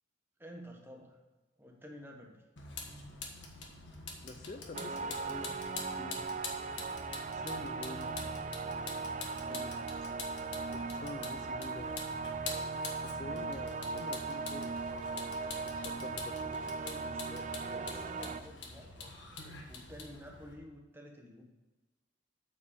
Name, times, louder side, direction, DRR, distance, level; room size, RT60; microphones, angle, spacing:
voice 1, 0.4-1.2 1.6-2.4 16.8-19.1 19.7-21.4, equal, 10° right, 1 dB, 1.2 m, -50 dB
Vehicle, 2.6-20.5, left 4 dB, 70° left, 1.4 m, -46 dB
voice 2, 4.2-6.3 7.3-8.2 9.3-9.7 10.0-10.1 10.7-12.0 13.0-15.1 15.6-16.8, left 3 dB, 40° left, 7 dB, 0.5 m, -48 dB
sound 1, 4.7-18.4, right 4 dB, 40° right, 0.4 m, -38 dB
8.5 x 4.8 x 6.7 m, 1.2 s
head